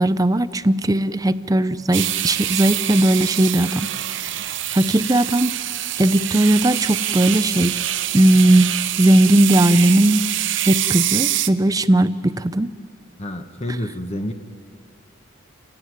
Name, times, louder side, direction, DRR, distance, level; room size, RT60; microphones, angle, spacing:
voice 1, 0.0-3.9 4.2-5.5 6.0-7.8 8.1-10.3 10.7-12.7, right 1 dB, 20° right, 14 dB, 0.5 m, -18 dB
sound 1, 1.9-11.5, right 13 dB, 65° right, 0.7 m, -25 dB
voice 2, 13.2-14.3, left 1 dB, 30° left, 6 dB, 1.0 m, -28 dB
28.5 x 16.5 x 9.5 m, 2.4 s
head